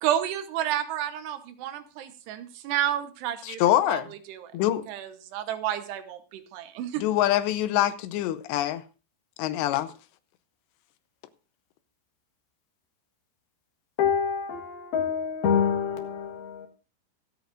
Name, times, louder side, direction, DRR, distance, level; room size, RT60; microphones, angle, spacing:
voice 1, 0.0-3.6 3.9-4.0 4.3-4.5 4.9-7.0, right 11 dB, 80° right, 3.0 m, -30 dB
voice 2, 3.4-4.1 4.5-4.9 7.0-8.8 9.4-9.9, left 13 dB, 85° left, 3.0 m, -24 dB
voice 3, 14.0-16.7, left 7 dB, 65° left, 3.4 m, -26 dB
24.0 x 8.4 x 2.5 m
omnidirectional pair, 4.9 m